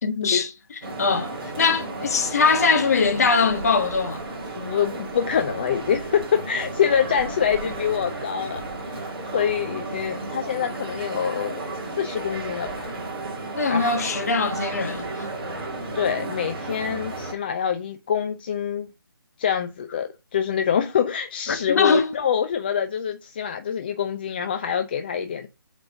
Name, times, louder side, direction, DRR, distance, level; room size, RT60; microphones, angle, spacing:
voice 1, 0.0-0.5 1.0-1.3 1.6-4.2 13.5-15.3 21.5-22.1, left 4 dB, 40° left, 1.5 m, -22 dB
sound 1, 0.8-17.3, right 2 dB, 25° right, 2.7 m, -33 dB
voice 2, 4.6-11.6 12.0-12.9 13.7-14.0 15.9-18.9 19.4-25.5, left 8 dB, 25° left, 0.5 m, -25 dB
7.6 x 4.1 x 5.5 m
figure-of-eight pair, 150°, 12 cm